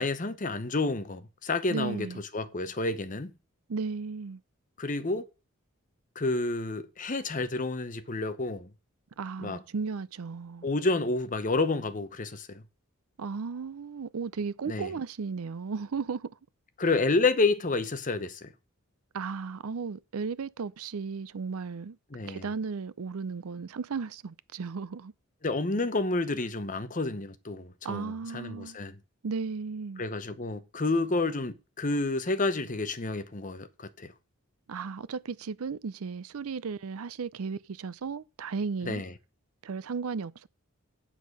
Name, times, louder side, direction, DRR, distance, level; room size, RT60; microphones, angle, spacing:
voice 1, 0.0-2.1 2.3-3.3 4.8-5.2 6.2-8.7 9.4-9.6 10.6-12.6 14.7-14.9 16.8-18.5 22.1-22.4 25.4-29.0 30.0-34.1 38.8-39.1, left 3 dB, 35° left, 0.9 m, -29 dB
voice 2, 1.7-2.2 3.7-4.4 9.2-10.7 13.2-16.3 19.1-22.0 22.2-25.1 27.8-28.8 29.2-30.0 34.7-39.0 39.6-40.5, right 5 dB, 80° right, 0.5 m, -35 dB
8.3 x 7.4 x 5.4 m
head